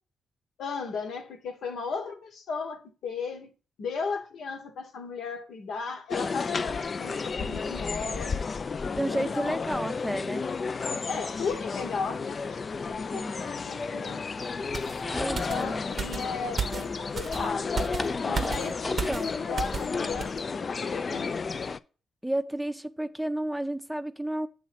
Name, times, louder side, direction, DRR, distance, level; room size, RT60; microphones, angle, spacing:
voice 1, 0.6-3.5 3.8-8.4 9.1-9.5 11.1-14.2 15.3-17.9 18.2-21.3, left 5 dB, 75° left, 0.9 m, -36 dB
sound 1, 6.1-21.8, left 5 dB, 45° left, 0.3 m, -32 dB
voice 2, 8.9-10.4 13.1-13.4 15.1-15.9 18.9-19.3 22.2-24.5, right 1 dB, 5° right, 0.5 m, -32 dB
sound 2, 14.7-19.9 20.2-20.4, right 6 dB, 50° right, 0.7 m, -35 dB
sound 3, 14.9-15.7 16.9-17.0 17.4-19.3 19.7-20.7, left 1 dB, 25° left, 0.9 m, -36 dB
7.3 x 3.1 x 5.8 m
supercardioid pair, 50°, 0 cm